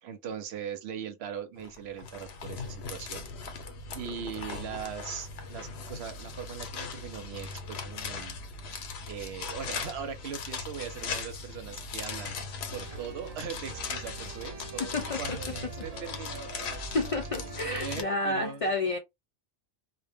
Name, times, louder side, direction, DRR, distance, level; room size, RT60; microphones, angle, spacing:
voice 1, 0.0-3.2 3.9-8.4 9.1-12.4 12.7-17.0 17.6-18.7, right 7 dB, 80° right, 0.9 m, -40 dB
sound 1, 1.6-18.0, left 4 dB, 85° left, 0.9 m, -39 dB
sound 2, 12.7-18.0, right 4 dB, 50° right, 0.5 m, -45 dB
voice 2, 14.9-15.4 16.9-19.0, left 2 dB, 55° left, 0.4 m, -30 dB
2.1 x 2.1 x 3.3 m
omnidirectional pair, 1.1 m